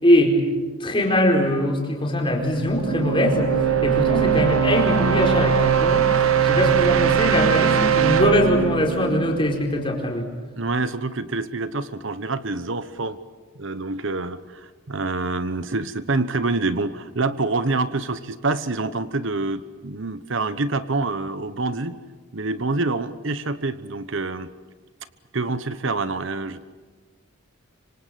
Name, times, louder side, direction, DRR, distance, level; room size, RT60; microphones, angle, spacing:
voice 1, 0.0-0.4 0.8-3.5 3.8-10.2, left 1 dB, 25° left, 1 dB, 4.5 m, -21 dB
sound 1, 2.4-10.2, right 8 dB, 90° right, 1.1 m, -21 dB
voice 2, 10.6-13.2 13.5-21.9 22.3-24.5 25.3-26.7, right 3 dB, 65° right, 13 dB, 1.0 m, -26 dB
25.5 x 25.5 x 7.7 m, 1.4 s
head